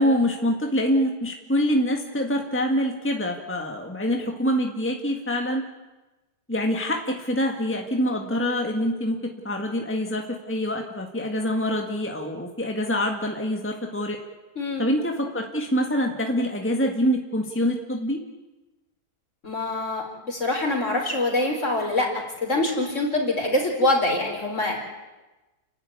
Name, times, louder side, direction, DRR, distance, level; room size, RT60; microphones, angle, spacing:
voice 1, 0.0-5.6 6.5-9.2 9.4-14.2 14.8-18.2, equal, 5° left, 2 dB, 1.9 m, -25 dB
voice 2, 14.6-14.9 19.4-22.1 22.4-24.8, left 2 dB, 45° left, 1 dB, 5.0 m, -24 dB
30.0 x 12.0 x 9.6 m, 1.1 s
omnidirectional pair, 1.8 m